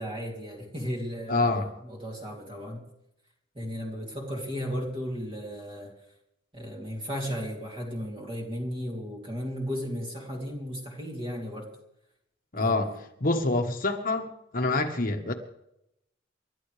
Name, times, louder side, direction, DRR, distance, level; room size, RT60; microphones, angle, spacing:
voice 1, 0.0-2.8 3.5-6.0 6.5-11.8 12.5-13.0, equal, 25° right, 3.0 m, -35 dB
voice 2, 1.3-1.7 12.5-15.3, left 2 dB, 45° left, 1.4 m, -27 dB
29.0 x 12.5 x 3.4 m
head